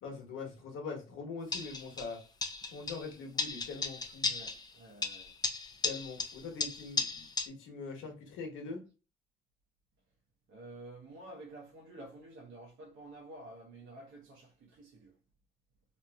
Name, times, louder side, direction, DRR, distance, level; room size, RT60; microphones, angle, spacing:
voice 1, 0.0-2.2 2.7-4.3 5.8-8.8, left 4 dB, 85° left, 1.1 m, -43 dB
sound 1, 1.5-2.1 2.4-3.1 3.4-4.7 5.0-7.5, left 4 dB, 20° left, 0.5 m, -35 dB
voice 2, 4.2-5.3 10.5-15.1, right 2 dB, 75° right, 0.8 m, -50 dB
3.0 x 2.6 x 2.2 m
cardioid pair, 90°, 20 cm